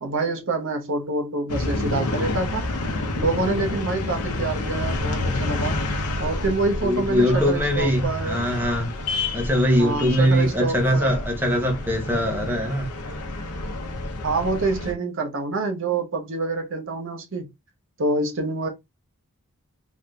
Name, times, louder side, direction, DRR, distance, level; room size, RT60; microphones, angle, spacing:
voice 1, 0.0-2.7 3.2-5.8 6.2-8.4 9.8-11.0 14.2-17.5 18.0-18.7, right 3 dB, 60° right, 0.7 m, -26 dB
sound 1, 1.5-14.9, left 2 dB, 90° left, 0.7 m, -29 dB
voice 2, 6.8-8.9 9.3-12.9, equal, 10° right, 0.7 m, -22 dB
3.4 x 2.6 x 2.2 m
head